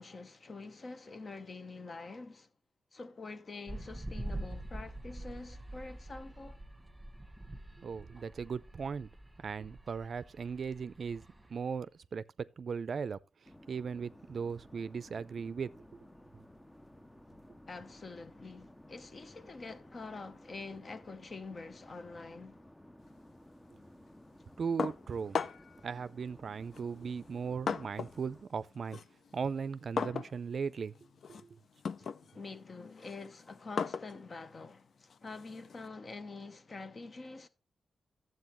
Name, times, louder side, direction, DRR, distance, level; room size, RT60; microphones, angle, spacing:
voice 1, 0.0-2.5 2.9-6.6 17.7-22.7 32.0-37.5, left 3 dB, 45° left, 0.9 m, -46 dB
sound 1, 3.7-11.7, right 1 dB, 10° right, 1.4 m, -45 dB
voice 2, 7.8-9.1 9.4-11.2 11.5-13.2 13.7-15.7 24.6-25.4 25.8-29.0 29.3-30.9 31.3-31.6, right 6 dB, 60° right, 0.4 m, -38 dB
sound 2, 13.4-28.4, left 1 dB, 10° left, 0.6 m, -56 dB
sound 3, 24.8-25.8 26.7-28.3 28.6-35.9, left 6 dB, 70° left, 0.5 m, -39 dB
12.0 x 7.7 x 3.0 m
cardioid pair, 95°, 0 cm